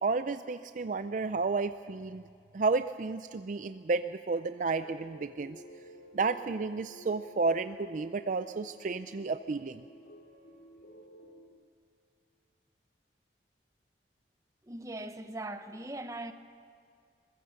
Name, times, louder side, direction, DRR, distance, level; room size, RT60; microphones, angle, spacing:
voice 1, 0.0-2.2 2.5-5.6 6.1-9.8, right 4 dB, 45° right, 0.4 m, -32 dB
sound 1, 4.7-11.5, equal, 60° left, 3.0 m, -52 dB
voice 2, 14.7-16.3, right 1 dB, 20° right, 0.9 m, -40 dB
22.5 x 21.0 x 6.5 m
head